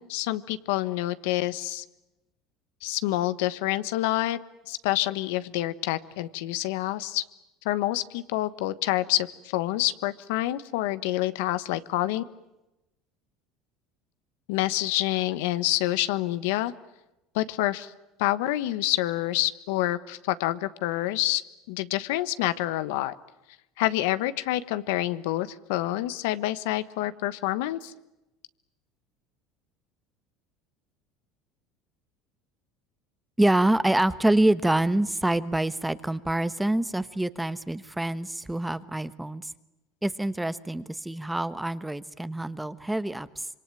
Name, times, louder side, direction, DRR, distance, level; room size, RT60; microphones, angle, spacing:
voice 1, 0.0-1.8 2.8-4.4 4.7-7.2 7.6-12.2 14.5-16.7 17.3-17.9 18.2-21.4 21.7-23.1 23.8-27.9, left 16 dB, 80° left, 14 dB, 1.2 m, -27 dB
voice 2, 33.4-39.5 40.0-43.5, right 1 dB, 5° right, 14 dB, 1.1 m, -26 dB
26.0 x 23.5 x 9.1 m, 0.96 s
supercardioid pair, 115°, 0 cm